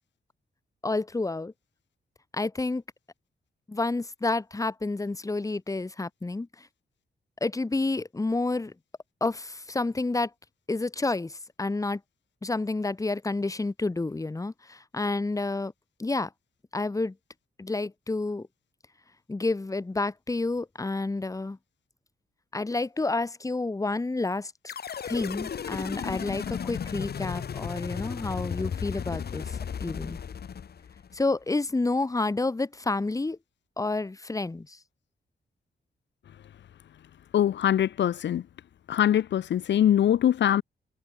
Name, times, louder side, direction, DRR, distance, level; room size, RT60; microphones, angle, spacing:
voice 1, 0.8-1.5 2.3-2.8 3.7-6.7 7.4-8.7 9.2-10.3 10.7-12.0 12.4-15.7 16.0-16.3 16.7-17.1 17.6-18.5 19.3-21.6 22.5-24.7 25.0-30.2 31.1-33.4 33.8-34.8, left 3 dB, 20° left, 1.2 m, -29 dB
sound 1, 24.7-31.2, left 7 dB, 60° left, 2.0 m, -35 dB
voice 2, 37.3-38.4 38.9-40.6, left 10 dB, 80° left, 0.7 m, -23 dB
wide cardioid pair, 105°, 18 cm